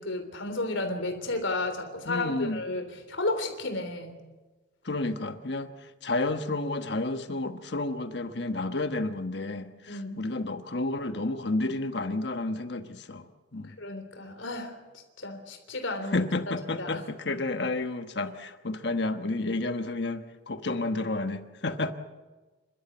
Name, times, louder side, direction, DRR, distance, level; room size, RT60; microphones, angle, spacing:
voice 1, 0.0-4.2 9.9-10.2 13.8-14.7 15.2-16.3 16.8-17.0, left 2 dB, 75° left, 6 dB, 3.4 m, -32 dB
voice 2, 2.1-2.6 4.8-5.7 6.0-13.2 13.5-13.7 16.1-21.9, left 2 dB, 60° left, 8 dB, 1.2 m, -31 dB
28.5 x 13.0 x 8.0 m, 1.2 s
head